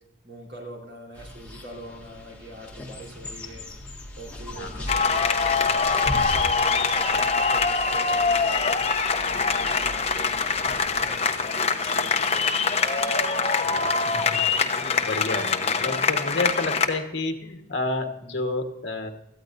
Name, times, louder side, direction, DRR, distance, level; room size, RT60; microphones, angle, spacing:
voice 1, 0.2-3.7 4.1-8.8 9.3-12.9, right 1 dB, 65° right, -1 dB, 4.0 m, -43 dB
sound 1, 1.1-11.2, left 1 dB, 5° left, 1.9 m, -39 dB
voice 2, 4.5-4.9 13.6-14.4 15.0-19.1, left 2 dB, 60° left, 4 dB, 1.5 m, -30 dB
sound 2, 4.9-16.9, left 5 dB, 30° left, 1.0 m, -24 dB
18.0 x 14.0 x 2.7 m, 0.90 s
head